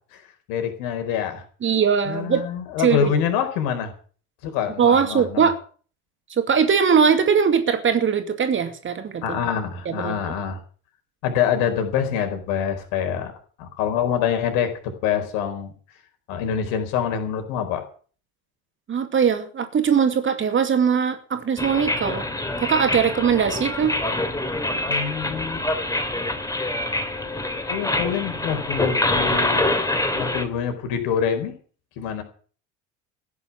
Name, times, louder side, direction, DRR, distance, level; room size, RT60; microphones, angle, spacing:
voice 1, 0.5-1.4 2.1-3.9 4.4-5.5 9.2-10.6 11.2-13.3 13.6-15.7 16.3-17.8 24.9-25.6 27.7-29.8 30.1-31.5 32.0-32.2, left 8 dB, 55° left, 7 dB, 4.4 m, -25 dB
voice 2, 1.6-2.4 2.8-3.2 4.8-5.6 6.4-9.4 9.9-10.3 18.9-22.3 22.6-23.9, right 6 dB, 30° right, 8 dB, 2.4 m, -20 dB
sound 1, 21.6-30.4, left 2 dB, 10° left, 2.8 m, -25 dB
15.5 x 9.8 x 7.4 m, 0.43 s
figure-of-eight pair, 65°, 40 cm